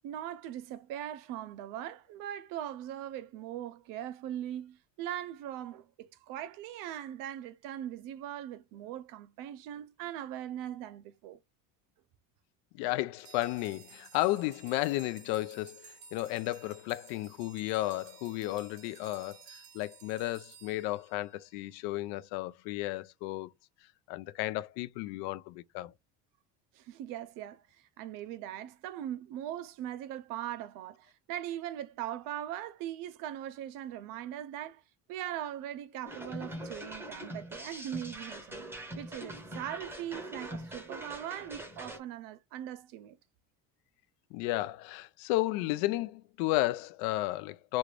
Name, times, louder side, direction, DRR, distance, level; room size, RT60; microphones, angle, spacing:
voice 1, 0.0-11.4 26.7-34.8 35.1-38.6 39.0-43.2, right 11 dB, 55° right, 0.5 m, -40 dB
voice 2, 12.7-23.5 24.1-25.9 44.3-47.8, left 17 dB, 80° left, 0.5 m, -33 dB
sound 1, 13.2-21.7, right 6 dB, 90° right, 1.2 m, -55 dB
sound 2, 36.1-42.0, right 1 dB, 5° right, 0.7 m, -43 dB
3.1 x 2.5 x 3.2 m
cardioid pair, 165°, 38 cm